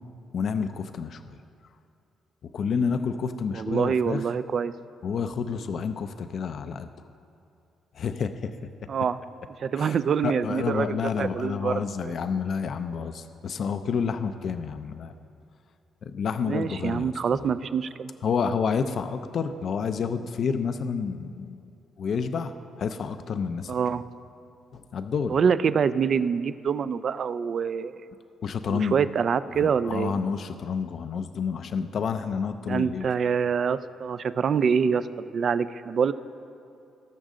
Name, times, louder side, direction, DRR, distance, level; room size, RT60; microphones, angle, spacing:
voice 1, 0.3-1.4 2.5-4.2 5.0-6.9 7.9-8.5 9.8-10.0 10.2-15.1 16.0-17.4 18.2-21.6 22.0-23.8 24.7-25.4 28.4-29.0 29.6-33.1, left 6 dB, 60° left, 9 dB, 0.5 m, -29 dB
voice 2, 3.5-4.7 8.9-9.2 9.6-12.1 16.4-18.1 23.7-24.0 25.3-28.1 28.7-30.2 32.7-35.1 35.3-36.1, right 6 dB, 55° right, 14 dB, 0.4 m, -25 dB
19.0 x 6.3 x 3.8 m, 2.5 s
cardioid pair, 90°, 0 cm